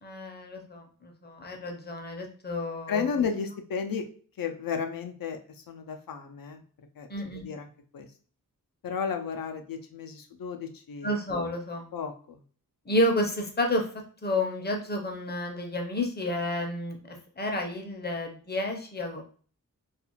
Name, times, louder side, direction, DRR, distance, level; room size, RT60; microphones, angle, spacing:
voice 1, 0.0-3.1 7.1-7.4 11.0-11.9 12.9-13.8 14.2-19.2, left 1 dB, 30° left, 3 dB, 0.6 m, -30 dB
voice 2, 2.9-4.1 4.4-6.6 7.0-7.1 7.3-8.1 8.8-11.1 11.9-12.4, left 6 dB, 85° left, 6 dB, 0.5 m, -33 dB
2.4 x 2.4 x 2.9 m, 0.43 s
wide cardioid pair, 110°, 34 cm